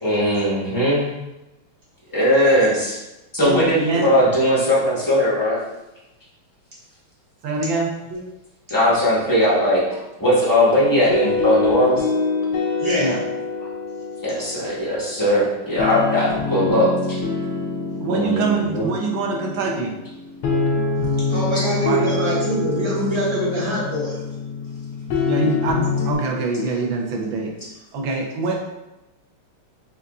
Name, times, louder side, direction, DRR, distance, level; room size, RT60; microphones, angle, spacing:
voice 1, 0.0-1.1 2.1-3.0 3.3-5.6 8.7-12.1 14.2-16.9 18.1-18.9, equal, 20° left, -8 dB, 0.5 m, -19 dB
voice 2, 3.9-4.2 7.4-7.9 13.0-13.2 18.0-19.9 21.8-22.0 25.2-27.5 27.9-28.6, right 3 dB, 70° right, 1 dB, 1.4 m, -24 dB
sound 1, 10.8-26.2, left 4 dB, 80° left, 1.5 m, -25 dB
voice 3, 12.8-13.2 19.6-19.7 21.2-24.2, equal, 20° right, -7 dB, 0.8 m, -24 dB
6.7 x 2.5 x 2.3 m, 0.97 s
omnidirectional pair, 2.4 m